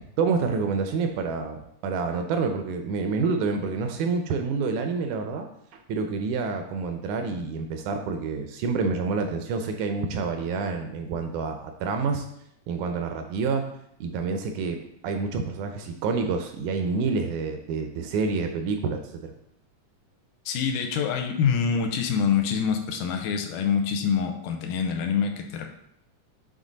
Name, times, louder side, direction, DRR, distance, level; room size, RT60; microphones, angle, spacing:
voice 1, 0.2-5.5 5.7-12.3 12.7-13.6 14.0-14.8 15.0-19.3, right 4 dB, 80° right, 5 dB, 1.9 m, -28 dB
voice 2, 20.5-25.7, left 6 dB, 90° left, 4 dB, 2.2 m, -25 dB
7.4 x 3.7 x 3.9 m, 0.75 s
omnidirectional pair, 3.7 m